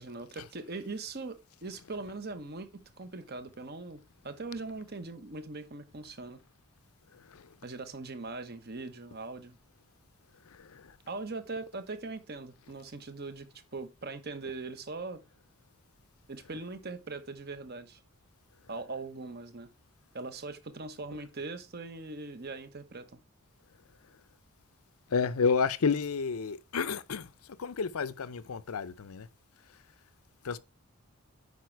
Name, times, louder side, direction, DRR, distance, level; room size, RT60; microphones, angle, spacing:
voice 1, 0.0-4.0 4.2-6.4 7.6-9.6 11.1-13.5 13.7-15.2 16.3-18.0 18.7-19.7 20.1-23.2, right 3 dB, 45° right, 1.0 m, -41 dB
voice 2, 7.1-7.5 10.5-10.9 25.1-27.3 27.6-29.3 30.4-30.6, left 5 dB, 85° left, 0.6 m, -31 dB
9.4 x 4.9 x 4.6 m
head